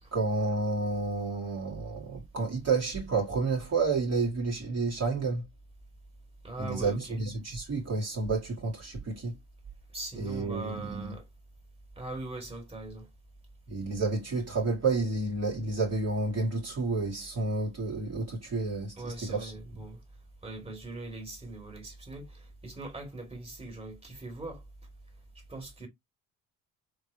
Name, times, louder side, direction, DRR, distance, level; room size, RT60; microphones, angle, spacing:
voice 1, 0.1-5.5 6.6-9.4 10.2-11.2 13.7-19.5, right 3 dB, 40° right, 2.0 m, -30 dB
voice 2, 6.4-7.2 9.9-11.2 12.0-13.1 19.0-20.0 20.4-24.6 25.5-25.9, right 2 dB, 15° right, 2.4 m, -41 dB
3.6 x 3.2 x 2.8 m
hypercardioid pair, 60°, 39 cm